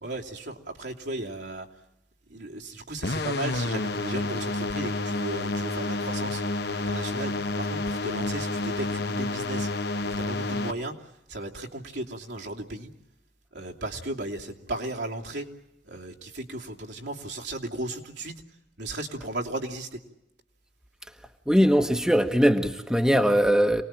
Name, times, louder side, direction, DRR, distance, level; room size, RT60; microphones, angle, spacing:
voice 1, 0.0-1.7 2.3-6.4 6.7-9.7 10.0-12.9 13.5-15.5 15.8-18.4 18.8-20.0, right 2 dB, 70° right, 0 dB, 2.9 m, -35 dB
sound 1, 3.0-10.7, left 2 dB, 60° left, 1.3 m, -29 dB
voice 2, 21.5-23.8, equal, 5° right, 5 dB, 1.2 m, -21 dB
27.5 x 20.0 x 9.0 m, 0.88 s
head